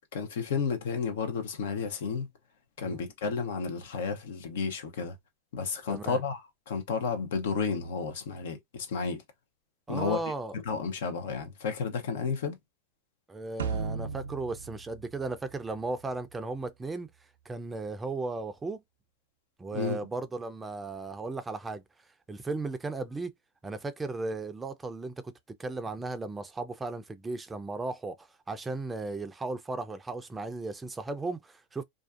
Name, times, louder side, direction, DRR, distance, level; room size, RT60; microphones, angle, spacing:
voice 1, 0.1-2.3 2.8-5.1 5.5-6.4 6.7-9.2 9.9-10.2 10.5-12.5 19.7-20.0, left 5 dB, 70° left, 0.7 m, -32 dB
voice 2, 5.9-6.2 9.9-10.6 13.3-17.1 17.5-18.8 19.6-21.8 22.3-23.3 23.6-31.8, right 3 dB, 15° right, 0.4 m, -36 dB
sound 1, 13.6-16.1, right 5 dB, 85° right, 0.4 m, -36 dB
2.5 x 2.3 x 2.4 m
hypercardioid pair, 100°, 0 cm